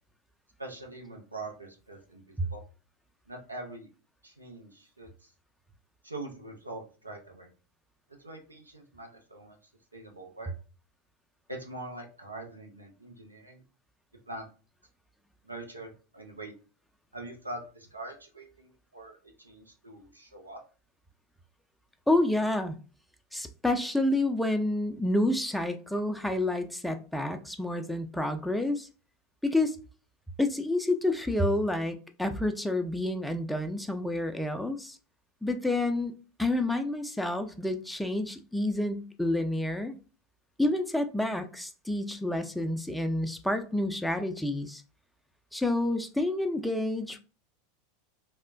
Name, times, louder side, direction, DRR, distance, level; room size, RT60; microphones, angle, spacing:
voice 1, 0.6-2.6 3.3-3.9 4.2-5.3 6.0-7.5 8.1-9.6 9.9-10.5 11.5-13.6 14.3-14.5 15.4-16.5 17.1-20.6, right 2 dB, 90° right, 2 dB, 0.6 m, -43 dB
voice 2, 22.1-22.8 23.3-28.9 29.4-29.8 30.4-35.0 35.4-36.1 36.4-39.9 40.6-44.8 45.5-47.2, left 1 dB, ahead, 6 dB, 0.3 m, -29 dB
3.1 x 2.1 x 2.4 m, 0.35 s
figure-of-eight pair, 85°, 0 cm